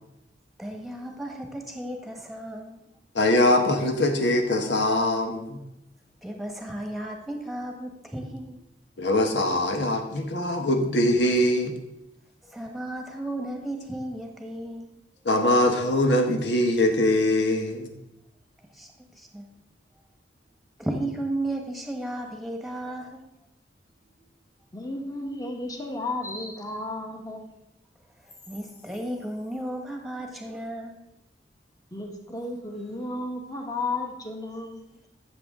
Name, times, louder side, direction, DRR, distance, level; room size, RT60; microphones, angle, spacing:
voice 1, 0.6-2.8 6.2-8.6 12.4-14.9 18.7-18.9 19.1-19.5 20.8-23.2 28.5-31.0, right 1 dB, ahead, 2 dB, 1.3 m, -34 dB
voice 2, 3.1-5.6 9.0-11.7 15.2-17.9, left 1 dB, 80° left, 4 dB, 1.3 m, -22 dB
voice 3, 24.7-27.5 31.9-35.0, left 2 dB, 20° left, 2 dB, 1.3 m, -33 dB
13.5 x 6.9 x 3.7 m, 0.91 s
head